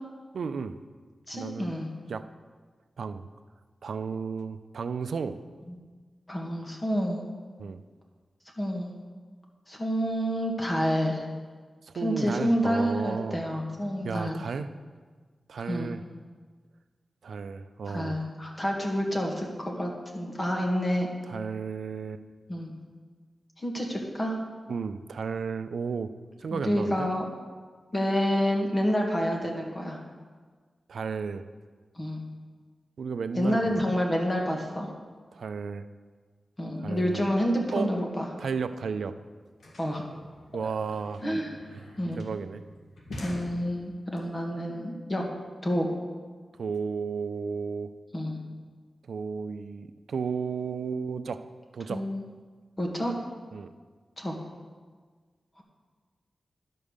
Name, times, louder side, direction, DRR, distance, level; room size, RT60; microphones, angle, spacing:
voice 1, 0.3-0.8 1.3-1.7 2.1-2.3 3.0-3.3 3.8-5.4 7.6-7.8 11.8-13.4 14.0-14.7 15.5-16.0 17.2-18.2 21.3-22.2 24.7-26.1 26.4-27.1 30.9-31.4 33.0-33.9 35.3-35.9 36.8-37.3 37.7-37.9 38.4-39.1 40.5-41.2 41.7-42.6 46.6-47.9 49.1-51.4 51.7-52.0 53.5-53.7, right 5 dB, 90° right, 10 dB, 0.4 m, -33 dB
voice 2, 1.3-1.9 6.3-7.2 8.6-8.9 9.7-11.2 12.0-14.4 15.7-15.9 17.9-21.1 22.5-22.7 23.6-24.4 26.5-27.2 27.9-30.0 31.9-32.2 33.3-34.9 36.6-38.3 39.8-40.1 40.5-40.6 41.2-41.5 42.0-42.2 43.2-45.2 45.6-45.9 48.1-48.4 51.9-52.2 52.8-53.2 54.2-54.3, equal, 25° left, 0 dB, 1.8 m, -28 dB
sound 1, 38.7-38.8 39.0-44.2, equal, 90° left, 1.6 m, -46 dB
11.0 x 5.4 x 6.5 m, 1.5 s
wide cardioid pair, 85°, 0 cm